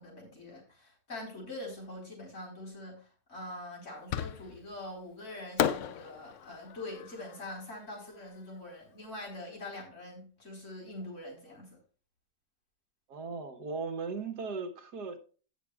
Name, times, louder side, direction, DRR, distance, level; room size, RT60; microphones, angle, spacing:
voice 1, 0.0-11.8, left 1 dB, 45° left, 4.4 m, -44 dB
Fireworks, 4.1-4.8 5.6-8.7, left 9 dB, 70° left, 0.7 m, -35 dB
voice 2, 13.1-15.2, right 4 dB, 75° right, 1.8 m, -37 dB
17.0 x 6.3 x 2.4 m
omnidirectional pair, 1.8 m